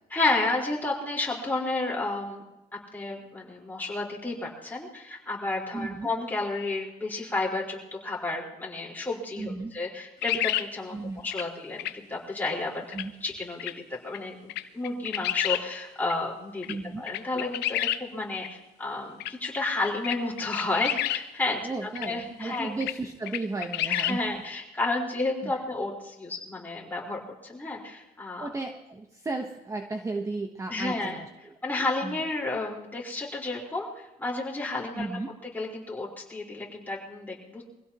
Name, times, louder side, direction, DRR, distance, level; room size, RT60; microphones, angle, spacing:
voice 1, 0.1-2.4 2.9-11.0 11.2-16.7 17.0-21.7 22.0-22.7 23.8-28.5 30.7-31.2 31.6-35.1 35.5-37.6, left 2 dB, 10° left, -3 dB, 4.6 m, -31 dB
voice 2, 5.7-6.1 9.4-9.8 10.9-11.2 12.9-13.1 16.7-17.0 21.6-24.2 25.4-25.5 28.4-31.5 32.0-32.2 35.0-35.3, right 3 dB, 20° right, 5 dB, 1.1 m, -34 dB
sound 1, 10.2-10.7 11.3-11.4 11.8-11.9 12.9-13.0 13.6-13.7 14.1-14.2 14.5-15.6 16.1-16.2 16.6-16.7 17.1-18.0 18.4-18.5 19.2-19.3 19.8-21.2 22.0-22.1 22.5-22.9 23.3-24.1, left 14 dB, 85° left, 0.8 m, -29 dB
24.0 x 16.5 x 3.0 m, 0.96 s
cardioid pair, 110°, 17 cm